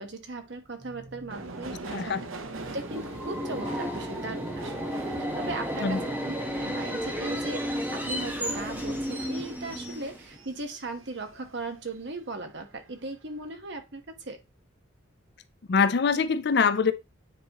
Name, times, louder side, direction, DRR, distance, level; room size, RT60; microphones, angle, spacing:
voice 1, 0.0-2.1 2.7-4.9 5.4-5.9 6.3-7.6 7.9-14.4, right 2 dB, 60° right, 1.3 m, -38 dB
sound 1, 0.8-9.9, equal, 40° right, 2.2 m, -52 dB
Subway metro underground, 1.3-12.0 12.4-13.1 13.4-13.5, right 2 dB, 85° right, 0.9 m, -42 dB
Subway metro underground 2, 2.6-10.4, equal, 10° right, 1.1 m, -33 dB
voice 2, 15.7-16.9, left 5 dB, 55° left, 0.5 m, -23 dB
9.4 x 4.1 x 2.9 m
head